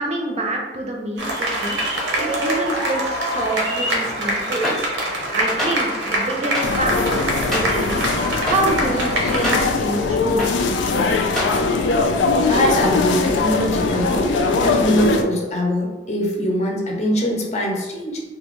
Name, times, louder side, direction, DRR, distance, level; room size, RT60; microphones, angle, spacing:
voice 1, 0.0-1.8 2.2-4.9 5.3-8.0 8.4-11.2, right 2 dB, 35° right, 0 dB, 0.5 m, -27 dB
sound 1, 1.2-9.6, right 1 dB, 90° right, 0.8 m, -24 dB
sound 2, 4.6-4.7 5.6-5.7 6.5-6.6 7.5-7.6 8.5-8.6 9.4-9.6 10.4-10.5 11.4-11.5, left 1 dB, ahead, 0.8 m, -23 dB
sound 3, 6.6-15.2, left 4 dB, 80° left, 0.3 m, -21 dB
voice 2, 12.5-18.2, equal, 40° left, -1 dB, 0.6 m, -22 dB
3.2 x 2.5 x 3.0 m, 1.2 s
head